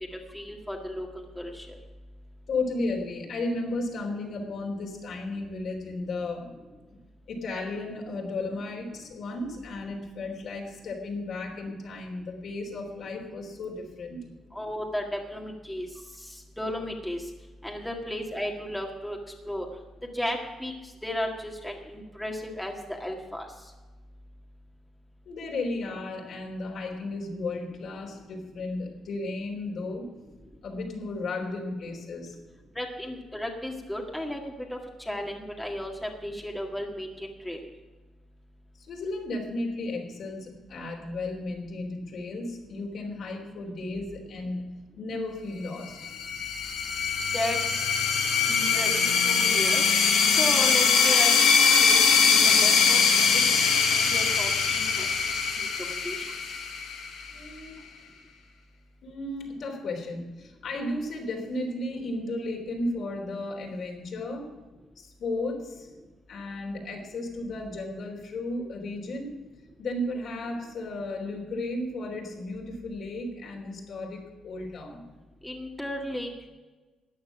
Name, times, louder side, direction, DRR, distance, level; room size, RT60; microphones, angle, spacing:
voice 1, 0.1-1.1 1.4-1.8 14.5-15.9 16.2-17.2 17.6-19.2 19.5-19.7 20.1-20.7 21.0-23.5 32.8-34.8 35.1-37.6 47.3-47.6 48.5-49.8 50.3-51.4 51.8-53.0 53.3-53.5 54.0-56.3 75.4-76.5, left 1 dB, 5° left, 0 dB, 1.9 m, -34 dB
voice 2, 2.5-6.5 6.9-7.0 7.3-14.2 25.3-30.1 30.6-32.4 38.9-46.0 57.3-57.8 59.0-64.5 65.0-65.9 66.3-69.3 69.8-75.1, left 2 dB, 65° left, 1 dB, 3.5 m, -34 dB
sound 1, 46.0-57.3, left 6 dB, 90° left, 2.4 m, -22 dB
14.0 x 9.4 x 6.0 m, 1.2 s
cardioid pair, 90°, 0 cm